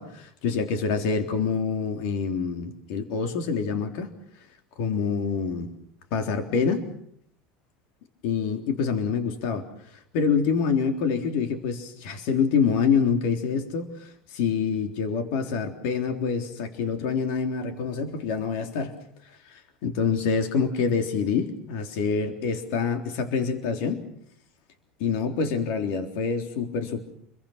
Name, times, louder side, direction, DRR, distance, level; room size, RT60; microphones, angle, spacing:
voice 1, 0.0-4.1 4.8-5.7 6.1-6.9 8.2-9.6 9.9-18.9 19.5-24.0 25.0-27.0, left 5 dB, 70° left, 5 dB, 3.6 m, -26 dB
29.5 x 23.0 x 5.9 m, 0.69 s
cardioid pair, 150°, 4 cm